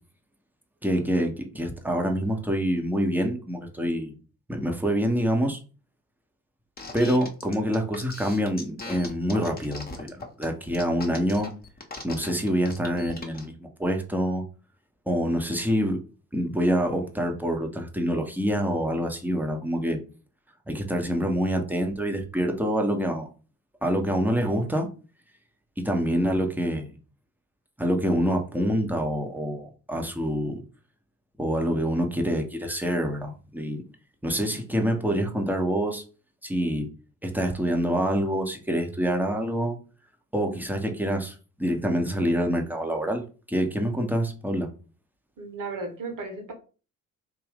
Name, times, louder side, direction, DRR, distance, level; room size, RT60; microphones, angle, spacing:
voice 1, 0.8-4.1 4.5-5.6 6.9-11.5 12.0-14.4 15.1-16.0 16.3-20.0 20.7-23.3 23.8-24.9 25.8-26.9 27.8-30.6 31.4-33.8 34.2-36.0 36.4-36.9 37.2-39.8 40.3-43.2 43.5-44.7, equal, 5° right, 2 dB, 1.0 m, -26 dB
sound 1, 6.8-13.4, left 3 dB, 20° left, 1.0 m, -39 dB
voice 2, 45.4-46.5, right 3 dB, 45° right, 3 dB, 1.5 m, -35 dB
3.7 x 2.6 x 3.5 m, 0.35 s
figure-of-eight pair, 45°, 44 cm